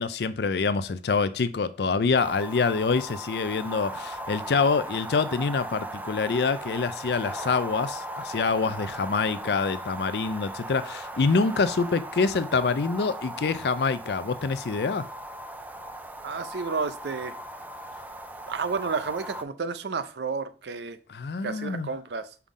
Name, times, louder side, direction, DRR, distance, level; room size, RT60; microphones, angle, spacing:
voice 1, 0.0-15.1 21.1-21.9, left 4 dB, 65° left, 0.4 m, -26 dB
sound 1, 2.2-19.4, right 1 dB, 10° right, 0.3 m, -38 dB
voice 2, 16.2-17.3 18.5-21.0 21.4-22.3, right 4 dB, 70° right, 0.5 m, -31 dB
5.7 x 3.7 x 4.9 m
head